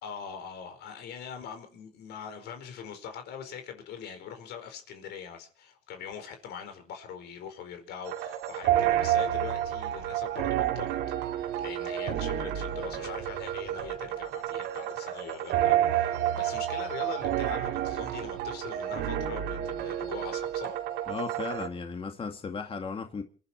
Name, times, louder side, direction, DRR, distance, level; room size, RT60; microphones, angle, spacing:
voice 1, 0.0-10.9 11.3-20.8 22.2-22.4, left 7 dB, 80° left, 4.7 m, -42 dB
sound 1, 8.1-21.7, right 11 dB, 85° right, 2.7 m, -30 dB
voice 2, 21.1-23.2, left 5 dB, 35° left, 2.2 m, -35 dB
27.5 x 11.5 x 4.5 m
cardioid pair, 110°, 17 cm